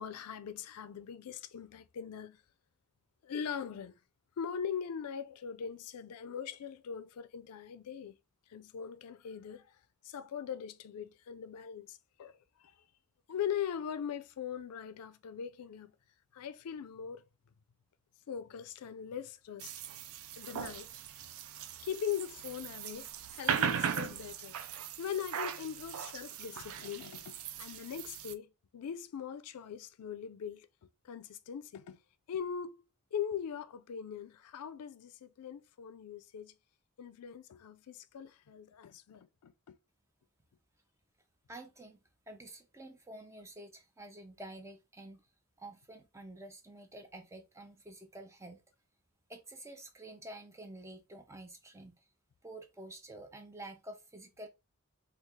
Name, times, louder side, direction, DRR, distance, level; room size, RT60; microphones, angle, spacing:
voice 1, 0.0-2.4 3.2-3.9 4.4-8.2 8.5-9.7 10.0-12.3 12.6-12.7 13.3-15.9 16.3-17.2 18.3-19.7 20.3-20.9 21.8-24.5 25.0-30.7 31.0-32.0 32.3-32.8 33.1-36.5 37.0-39.8, left 8 dB, 85° left, 0.4 m, -41 dB
sound 1, 19.6-28.3, right 8 dB, 65° right, 0.4 m, -38 dB
voice 2, 41.5-45.2 45.6-48.6 49.3-52.0 52.4-54.5, right 1 dB, 15° right, 0.5 m, -49 dB
3.1 x 2.3 x 3.4 m
head